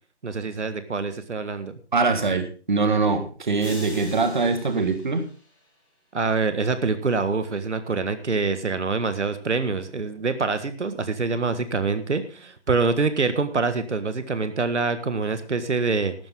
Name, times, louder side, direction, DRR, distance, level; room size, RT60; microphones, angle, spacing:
voice 1, 0.2-1.8 6.1-16.1, right 4 dB, 85° right, 10 dB, 1.7 m, -25 dB
voice 2, 1.9-5.2, right 4 dB, 45° right, 8 dB, 1.8 m, -23 dB
sound 1, 3.6-5.9, left 1 dB, 10° left, 4.0 m, -43 dB
14.0 x 12.5 x 3.7 m, 0.37 s
hypercardioid pair, 175°, 34 cm